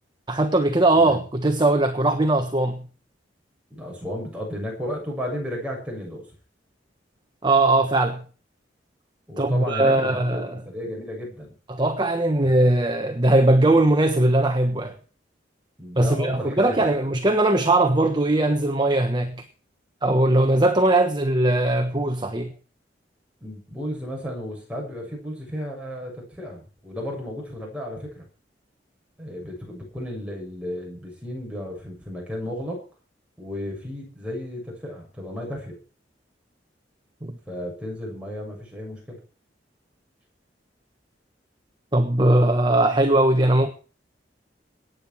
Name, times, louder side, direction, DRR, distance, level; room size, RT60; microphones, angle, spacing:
voice 1, 0.3-2.9 7.4-8.2 9.4-10.5 11.7-15.0 16.0-19.4 20.0-22.5 37.2-37.4 41.9-43.7, right 2 dB, 25° right, 1.3 m, -20 dB
voice 2, 3.7-6.3 9.3-11.5 15.8-16.7 23.4-28.2 29.2-32.8 33.4-35.8 37.5-39.2, equal, 5° right, 7.2 m, -33 dB
23.0 x 9.7 x 4.6 m
head